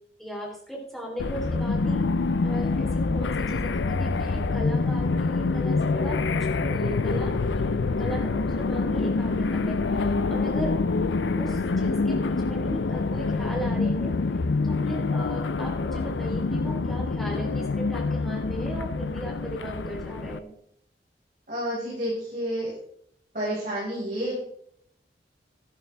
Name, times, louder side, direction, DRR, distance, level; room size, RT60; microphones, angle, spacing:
voice 1, 0.2-2.0 2.4-6.2 6.5-7.7 8.0-10.7 11.4-14.1 14.6-20.5, equal, ahead, -3 dB, 3.5 m, -37 dB
sound 1, 1.2-20.4, left 3 dB, 80° left, 0.6 m, -26 dB
voice 2, 10.2-10.6 21.5-22.7 23.3-24.3, equal, 45° right, -8 dB, 5.4 m, -30 dB
12.5 x 12.0 x 3.5 m, 0.69 s
head